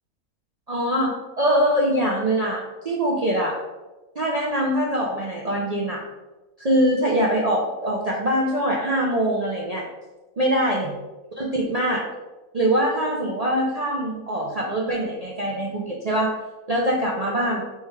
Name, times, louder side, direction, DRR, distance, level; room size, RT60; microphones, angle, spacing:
voice 1, 0.7-3.5 4.2-6.0 6.6-9.9 10.4-11.0 11.4-12.0 12.5-16.3 16.7-17.6, right 1 dB, 85° right, -3 dB, 0.3 m, -23 dB
3.3 x 3.2 x 4.7 m, 1.1 s
omnidirectional pair, 1.6 m